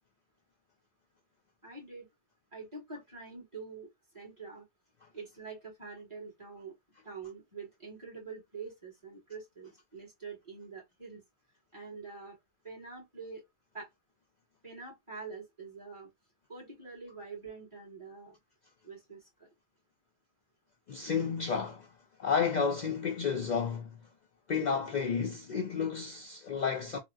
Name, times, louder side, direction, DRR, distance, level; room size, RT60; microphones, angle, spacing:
voice 1, 1.6-2.1 2.5-3.9 4.1-4.6 5.1-6.7 7.0-11.2 11.7-12.4 12.6-13.4 13.7-13.9 14.6-16.1 16.5-18.3 18.8-19.5, right 4 dB, 25° right, 1.8 m, -45 dB
voice 2, 20.9-21.9 22.2-24.0 24.5-27.0, left 6 dB, 75° left, 0.4 m, -31 dB
3.4 x 2.1 x 2.5 m
omnidirectional pair, 1.3 m